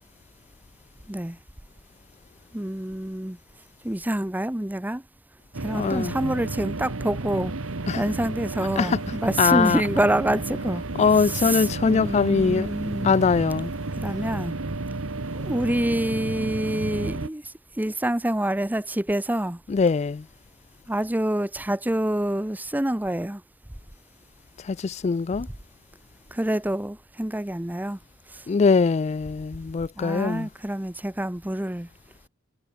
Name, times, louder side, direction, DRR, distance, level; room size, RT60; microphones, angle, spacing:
voice 1, 2.5-3.4 3.8-5.0 5.6-7.5 8.0-10.8 11.2-13.2 14.0-14.6 15.3-19.6 20.9-23.4 26.3-28.0 28.3-28.4 30.0-31.9, right 1 dB, 10° right, 0.7 m, -27 dB
sound 1, 5.5-17.3, right 2 dB, 80° right, 1.3 m, -32 dB
voice 2, 5.7-6.1 7.9-8.0 8.8-9.0 9.4-9.8 11.0-12.7 13.0-13.7 19.7-20.3 24.6-25.5 28.5-30.5, left 5 dB, 35° left, 0.3 m, -22 dB
head